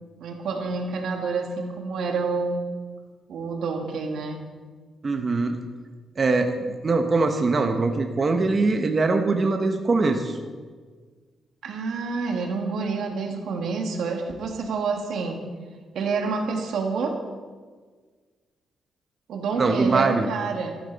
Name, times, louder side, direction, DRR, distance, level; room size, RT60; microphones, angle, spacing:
voice 1, 0.2-2.7 3.3-4.4 11.6-15.4 15.9-17.2 19.3-20.8, right 4 dB, 75° right, 2 dB, 2.0 m, -28 dB
voice 2, 5.0-5.6 6.2-6.5 6.8-10.4 19.6-20.3, right 3 dB, 30° right, 5 dB, 1.0 m, -22 dB
14.5 x 13.0 x 4.1 m, 1.5 s
cardioid pair, 140°, 0 cm